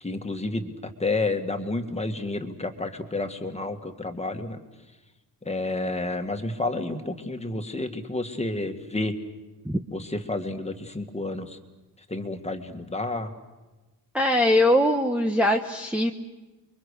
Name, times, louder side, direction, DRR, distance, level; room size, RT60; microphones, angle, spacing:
voice 1, 0.0-4.6 5.4-9.2 9.9-11.6 12.1-13.3, left 2 dB, 15° left, 6 dB, 1.9 m, -30 dB
voice 2, 14.1-16.1, left 1 dB, 5° right, 3 dB, 1.1 m, -21 dB
30.0 x 23.0 x 6.6 m, 1.2 s
wide cardioid pair, 135°, 40 cm